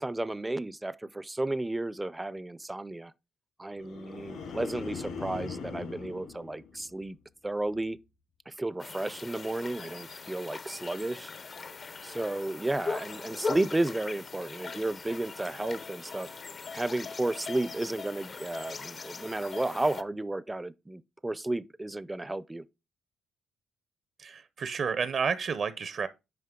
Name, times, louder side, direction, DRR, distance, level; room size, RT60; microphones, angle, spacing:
voice 1, 0.0-3.1 3.6-7.2 7.4-8.0 8.5-11.3 12.0-16.3 16.7-22.6, right 2 dB, 15° right, 0.5 m, -33 dB
sound 1, 3.8-7.2 7.6-8.0, left 5 dB, 75° left, 4.2 m, -41 dB
sound 2, 8.8-20.0, left 4 dB, 40° left, 0.7 m, -40 dB
voice 2, 24.2-26.1, right 6 dB, 55° right, 0.7 m, -31 dB
9.4 x 5.1 x 3.7 m
cardioid pair, 90°, 0 cm